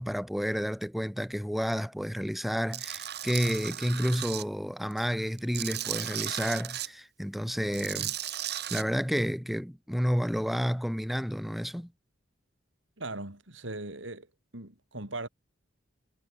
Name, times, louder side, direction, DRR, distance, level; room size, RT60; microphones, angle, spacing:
voice 1, 0.0-8.1 8.4-11.9, equal, ahead, 6.3 m, -30 dB
Tools, 2.7-4.4 4.9-6.9 7.6-8.8, right 11 dB, 60° right, 3.5 m, -35 dB
voice 2, 13.0-14.3 14.5-15.3, right 2 dB, 90° right, 4.9 m, -39 dB
head